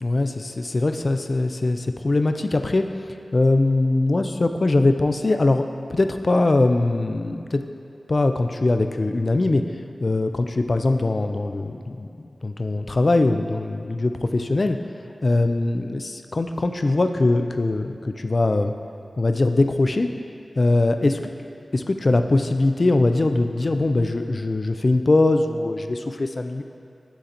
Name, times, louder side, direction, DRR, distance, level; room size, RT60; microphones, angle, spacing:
voice 1, 0.0-2.9 3.3-5.6 5.9-7.6 8.1-9.6 10.0-14.8 15.2-18.7 19.2-20.1 20.6-21.2 21.7-26.6, left 2 dB, 55° left, 7 dB, 0.3 m, -21 dB
9.9 x 3.8 x 2.8 m, 2.5 s
cardioid pair, 45°, 0 cm